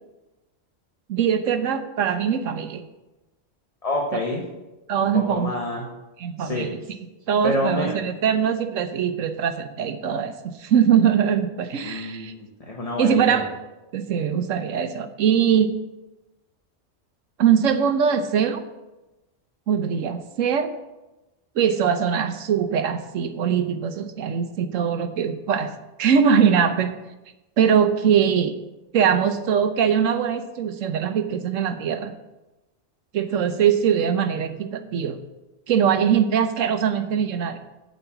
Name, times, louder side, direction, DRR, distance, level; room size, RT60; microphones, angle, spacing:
voice 1, 1.1-2.8 4.9-5.5 6.2-6.8 7.3-12.3 13.0-13.5 13.9-15.7 17.4-18.6 19.7-20.7 21.5-26.9 27.6-28.5 28.9-32.1 33.1-35.2 35.7-37.6, right 7 dB, 80° right, 8 dB, 1.2 m, -22 dB
voice 2, 3.8-4.4 5.0-5.8 6.4-6.7 7.4-7.9 11.8-13.4, left 1 dB, 30° left, -1 dB, 1.1 m, -27 dB
8.4 x 8.0 x 5.8 m, 1.0 s
omnidirectional pair, 1.3 m